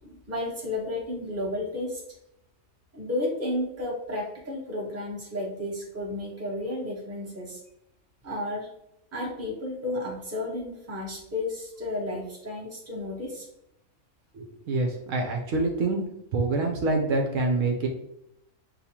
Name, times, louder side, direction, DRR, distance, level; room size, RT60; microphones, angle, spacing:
voice 1, 0.0-2.0 2.9-7.6 8.2-8.7 9.1-13.5, left 1 dB, 10° right, -4 dB, 0.9 m, -32 dB
voice 2, 14.3-16.0 16.3-17.9, right 3 dB, 70° right, 1 dB, 1.0 m, -26 dB
6.6 x 2.3 x 2.8 m, 0.80 s
omnidirectional pair, 1.4 m